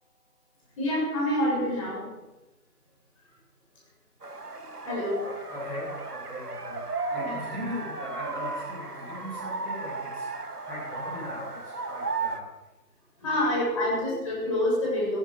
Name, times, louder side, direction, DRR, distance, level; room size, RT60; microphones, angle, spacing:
voice 1, 0.8-2.1 4.8-5.2 7.1-7.4 13.2-15.2, left 1 dB, 20° left, -5 dB, 6.8 m, -27 dB
sound 1, 4.2-12.4, right 3 dB, 75° right, 1.9 m, -35 dB
voice 2, 5.2-10.3 10.6-12.5 13.4-13.5 13.7-13.9, left 1 dB, 5° left, -8 dB, 1.8 m, -40 dB
18.5 x 17.0 x 4.6 m, 1.0 s
figure-of-eight pair, 160°, 47 cm